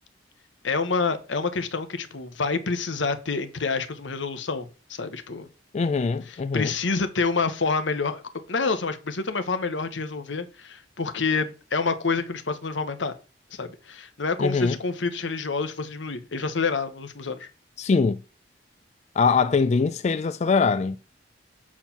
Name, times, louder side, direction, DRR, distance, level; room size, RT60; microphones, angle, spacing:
voice 1, 0.6-5.5 6.3-8.2 8.5-13.1 13.5-17.5, left 4 dB, 85° left, 1.0 m, -28 dB
voice 2, 5.7-6.7 14.4-14.8 17.8-18.2 19.2-21.0, left 4 dB, 40° left, 0.3 m, -22 dB
7.3 x 4.5 x 5.8 m
head